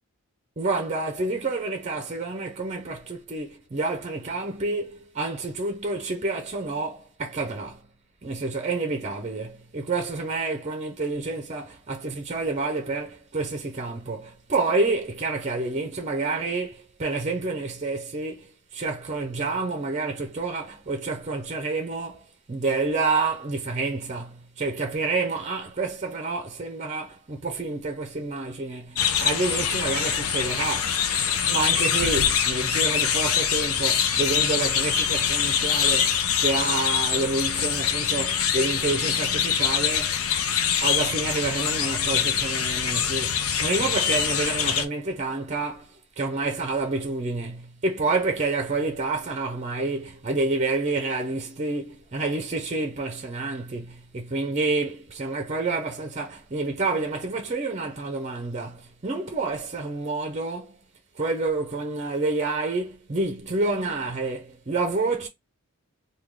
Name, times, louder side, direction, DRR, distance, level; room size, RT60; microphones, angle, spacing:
voice 1, 0.6-7.8 8.2-31.0 31.4-40.2 40.8-60.8 61.2-65.3, right 3 dB, 30° right, 0.6 m, -28 dB
sound 1, 29.0-44.9, left 8 dB, 80° left, 0.5 m, -24 dB
3.6 x 2.3 x 3.1 m
head